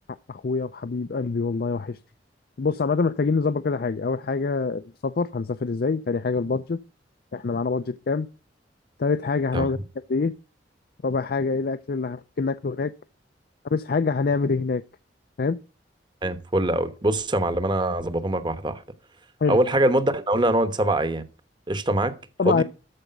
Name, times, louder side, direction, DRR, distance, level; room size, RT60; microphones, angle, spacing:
voice 1, 0.3-2.0 2.6-6.8 7.3-8.3 9.0-9.8 10.1-10.3 11.0-12.9 13.7-14.8 15.4-15.6 19.4-19.6 22.4-22.6, left 4 dB, 60° left, 0.5 m, -25 dB
voice 2, 16.2-18.8 19.5-21.2 21.7-22.1 22.4-22.6, right 1 dB, 25° right, 1.1 m, -23 dB
13.5 x 5.0 x 6.7 m
head